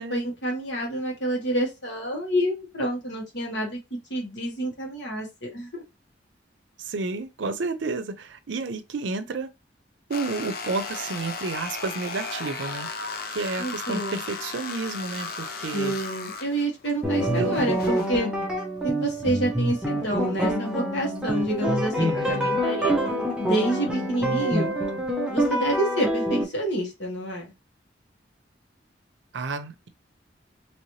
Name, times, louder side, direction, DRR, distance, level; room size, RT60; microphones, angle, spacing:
voice 1, 0.0-3.8 4.1-5.8 13.6-14.2 15.7-18.3 18.8-22.9 23.4-24.7 25.3-27.5, right 1 dB, 70° left, 1.6 m, -28 dB
voice 2, 6.8-9.5 10.1-12.9 13.3-16.0 17.4-17.7 22.0-22.6 29.3-29.9, right 3 dB, 80° right, 0.5 m, -31 dB
sound 1, 10.1-18.1, left 4 dB, 55° left, 0.5 m, -35 dB
sound 2, 17.0-26.4, equal, 5° right, 0.7 m, -26 dB
3.1 x 2.8 x 3.1 m
head